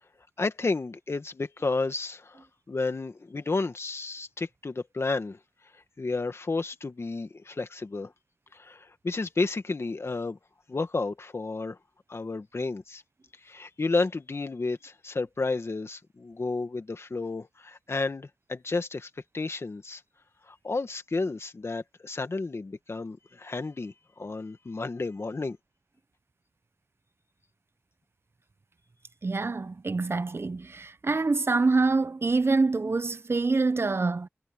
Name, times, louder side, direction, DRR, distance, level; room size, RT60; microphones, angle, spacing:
voice 1, 0.4-5.4 6.0-8.1 8.5-10.4 10.7-11.8 12.1-13.0 13.4-20.0 20.5-25.6, left 3 dB, 65° left, 1.8 m, -32 dB
voice 2, 29.2-34.3, right 3 dB, 60° right, 0.8 m, -26 dB
wide cardioid pair, 50°, 5 cm